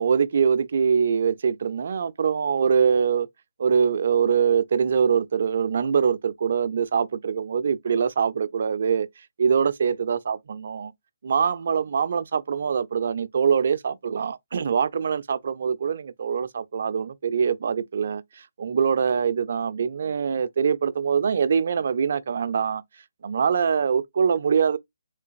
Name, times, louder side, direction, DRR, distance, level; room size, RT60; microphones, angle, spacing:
voice 1, 0.0-3.3 3.6-9.1 9.4-10.9 11.2-22.8 23.2-24.8, right 6 dB, 55° right, 0.4 m, -23 dB
3.8 x 3.2 x 2.4 m
figure-of-eight pair, 150°, 0 cm